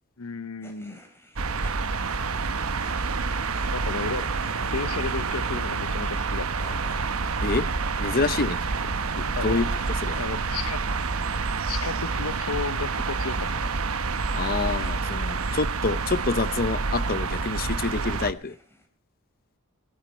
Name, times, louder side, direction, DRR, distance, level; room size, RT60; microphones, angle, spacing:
voice 1, 0.2-1.0 3.7-6.7 9.3-9.6 10.2-10.8 11.6-13.7, left 5 dB, 90° left, 0.8 m, -33 dB
sound 1, 0.6-18.9, left 1 dB, 10° left, 3.2 m, -52 dB
sound 2, 1.4-18.3, right 4 dB, 80° right, 1.0 m, -28 dB
voice 2, 8.0-9.7 10.0-10.2 14.3-18.5, left 3 dB, 45° left, 0.8 m, -27 dB
19.0 x 14.0 x 4.3 m
head